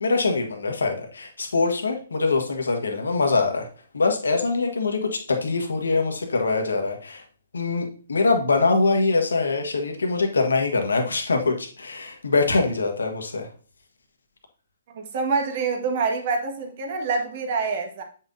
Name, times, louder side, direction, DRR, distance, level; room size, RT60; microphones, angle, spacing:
voice 1, 0.0-3.7 3.9-7.2 7.5-13.5, left 3 dB, 85° left, 1.3 m, -23 dB
voice 2, 14.9-18.0, right 4 dB, 50° right, 1.7 m, -26 dB
7.8 x 5.7 x 2.7 m
hypercardioid pair, 135°, 0 cm